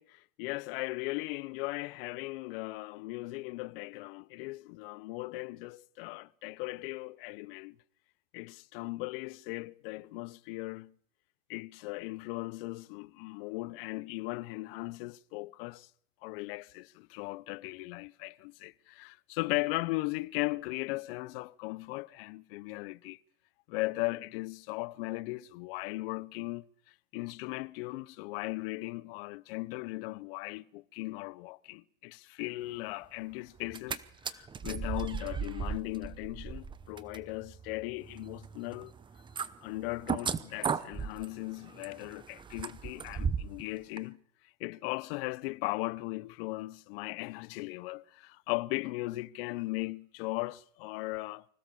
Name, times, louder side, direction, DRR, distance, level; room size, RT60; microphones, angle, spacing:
voice 1, 0.0-7.8 8.3-10.9 11.5-15.9 16.2-23.2 23.7-26.7 27.1-38.9 39.6-44.2 44.6-51.4, left 22 dB, 45° left, 0.8 m, -38 dB
sound 1, 33.6-34.0 34.2-43.6 44.0-44.1, right 6 dB, 10° right, 0.8 m, -37 dB
25.5 x 16.5 x 7.0 m
hypercardioid pair, 135°, 40 cm